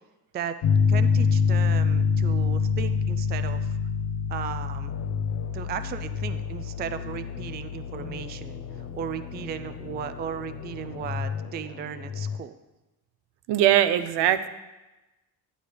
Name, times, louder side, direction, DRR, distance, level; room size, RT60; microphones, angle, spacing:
voice 1, 0.3-3.8 4.3-5.0 5.5-12.6, right 8 dB, 25° right, 11 dB, 0.3 m, -36 dB
Piano, 0.6-10.9, left 5 dB, 75° left, 1.0 m, -27 dB
sound 1, 4.9-12.4, left 7 dB, 45° left, 0.7 m, -37 dB
voice 2, 13.5-14.5, right 11 dB, 85° right, 13 dB, 0.7 m, -21 dB
11.5 x 11.0 x 3.4 m, 1.1 s
cardioid pair, 155°, 41 cm